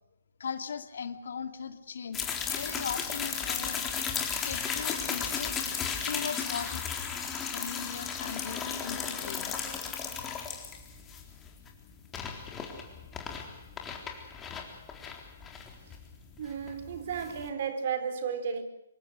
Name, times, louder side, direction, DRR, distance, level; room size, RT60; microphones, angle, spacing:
voice 1, 0.4-3.9 4.4-5.6 6.0-6.8 7.4-9.6, left 6 dB, 60° left, 2.5 m, -39 dB
sound 1, 2.1-17.5, left 6 dB, 15° left, 4.0 m, -35 dB
voice 2, 16.4-18.6, right 7 dB, 50° right, 4.5 m, -33 dB
26.5 x 23.5 x 6.6 m
figure-of-eight pair, 140°, 0 cm